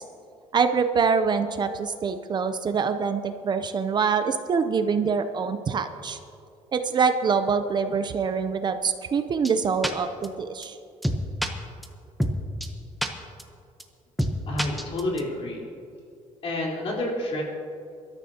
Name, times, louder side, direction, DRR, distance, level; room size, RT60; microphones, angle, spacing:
voice 1, 0.5-6.2 6.7-10.8, right 5 dB, 35° right, 8 dB, 0.6 m, -25 dB
sound 1, 9.4-9.5 9.8-9.9 10.2-10.3 10.6-10.7 11.0-11.5 11.8-11.9 12.2-12.3 12.6-12.7 13.0-13.1 13.4-13.5 13.8-13.9 14.2-14.3 14.6-15.2, equal, ahead, 0.9 m, -25 dB
voice 2, 14.5-15.7 16.4-17.4, left 1 dB, 50° left, -3 dB, 3.9 m, -29 dB
24.0 x 13.0 x 2.8 m, 2.4 s
cardioid pair, 145°, 13 cm